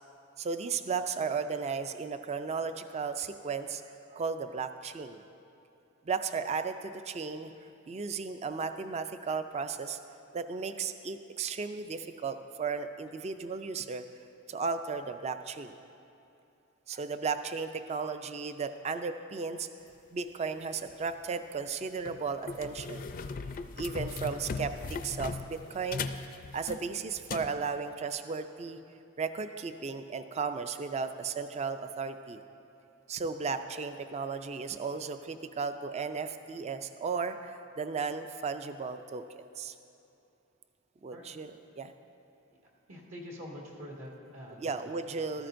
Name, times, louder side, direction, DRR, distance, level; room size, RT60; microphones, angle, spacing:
voice 1, 0.4-3.8 4.1-5.2 6.1-7.5 7.9-10.0 10.3-14.0 14.5-15.7 16.9-19.7 20.1-23.1 23.8-24.7 25.0-26.1 26.5-28.8 29.2-32.4 33.1-39.7 41.0-41.9 44.6-45.5, right 5 dB, 30° right, 9 dB, 0.3 m, -35 dB
sound 1, 20.9-21.1 21.7-21.8 22.1-27.5, left 4 dB, 40° left, 0.4 m, -38 dB
voice 2, 42.9-45.0, equal, 70° right, -2 dB, 2.1 m, -45 dB
14.5 x 13.0 x 2.6 m, 2.8 s
head